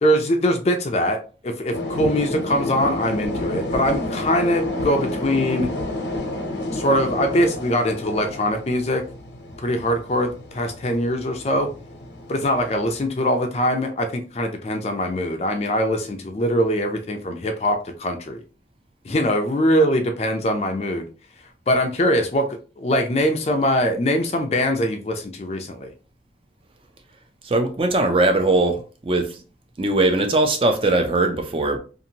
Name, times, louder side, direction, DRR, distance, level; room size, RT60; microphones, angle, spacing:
voice 1, 0.0-5.7 6.7-9.0 9.6-11.7 12.3-18.4 19.0-21.1 21.7-25.9, equal, 35° left, 5 dB, 0.4 m, -22 dB
sound 1, 1.7-13.1, left 1 dB, 90° left, 0.8 m, -30 dB
voice 2, 27.4-29.4 29.8-31.8, right 2 dB, 30° right, 6 dB, 0.4 m, -20 dB
2.7 x 2.5 x 2.7 m, 0.36 s
head